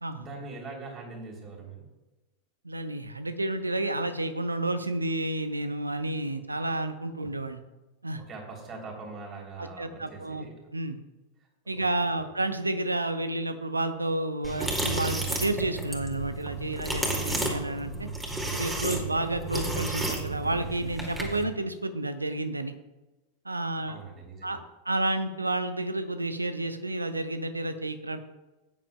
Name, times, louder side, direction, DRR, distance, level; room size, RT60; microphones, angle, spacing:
voice 1, 0.2-1.9 8.2-10.5 11.7-12.1 18.9-19.1 23.9-24.6, right 3 dB, 25° right, 0 dB, 3.2 m, -42 dB
voice 2, 2.6-7.6 8.0-8.2 9.6-10.4 10.7-11.0 11.7-18.1 18.5-22.7 23.4-24.0 24.4-24.6 24.8-28.2, right 2 dB, 80° right, 10 dB, 0.8 m, -30 dB
sound 1, 14.4-21.4, right 2 dB, 10° right, 2.2 m, -32 dB
16.5 x 9.5 x 2.3 m, 1.1 s
figure-of-eight pair, 90°, 0 cm